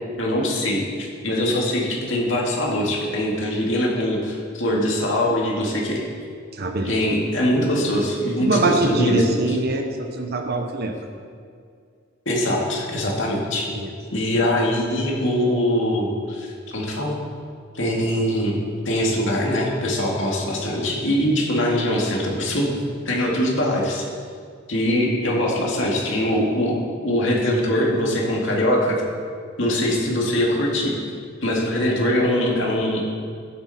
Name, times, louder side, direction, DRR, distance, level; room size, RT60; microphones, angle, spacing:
voice 1, 0.2-6.0 6.8-9.2 12.3-13.7 14.1-17.2 17.7-18.6 18.9-22.8 23.1-24.0 24.7-29.0 29.6-30.9 31.4-33.0, left 1 dB, 70° left, -2 dB, 2.2 m, -22 dB
voice 2, 6.5-7.0 8.4-10.9 13.7-13.9, right 2 dB, 55° right, 4 dB, 0.9 m, -23 dB
14.5 x 7.8 x 4.2 m, 2.1 s
head